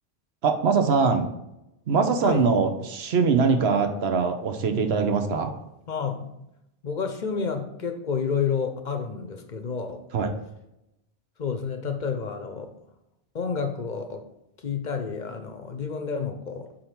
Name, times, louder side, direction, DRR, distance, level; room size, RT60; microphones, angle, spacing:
voice 1, 0.4-1.3 1.9-5.6 10.1-10.3, right 5 dB, 70° right, 6 dB, 1.0 m, -22 dB
voice 2, 5.9-6.4 6.8-10.0 11.4-12.7 13.3-14.3 14.6-16.7, left 6 dB, 50° left, 6 dB, 0.7 m, -30 dB
5.1 x 4.3 x 5.8 m, 0.86 s
omnidirectional pair, 1.1 m